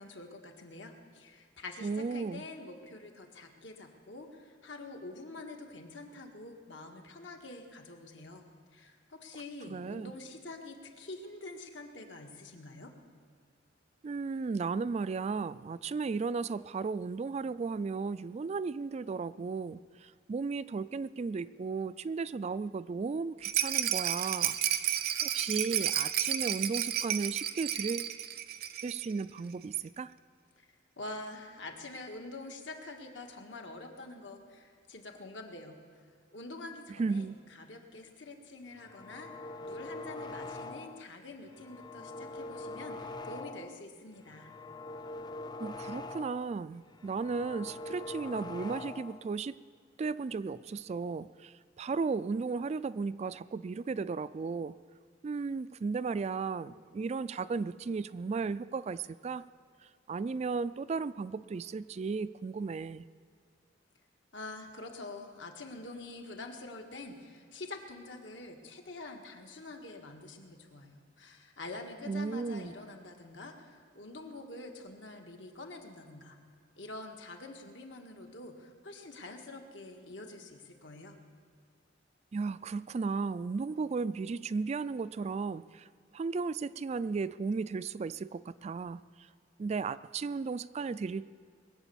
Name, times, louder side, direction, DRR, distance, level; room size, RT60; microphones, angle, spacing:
voice 1, 0.0-8.4 8.7-12.9 30.6-30.7 31.0-35.8 36.3-39.3 39.6-44.5 64.3-76.4 76.8-81.2, left 2 dB, 75° left, 3 dB, 1.7 m, -46 dB
voice 2, 1.8-2.4 9.7-10.1 14.0-24.6 25.2-28.1 28.8-30.1 37.0-37.4 45.6-49.5 50.0-54.8 55.2-59.4 60.1-63.1 72.1-72.7 82.3-85.9 86.1-89.3 89.6-91.3, right 4 dB, 35° right, 16 dB, 0.3 m, -35 dB
Rattle, 23.4-29.1 29.4-29.5 29.7-29.8, right 10 dB, 50° right, 0.7 m, -32 dB
sound 1, 38.7-41.1 41.5-43.8 44.2-46.6 46.9-49.3, left 2 dB, 25° left, 0.5 m, -43 dB
21.0 x 8.1 x 7.0 m, 2.2 s
head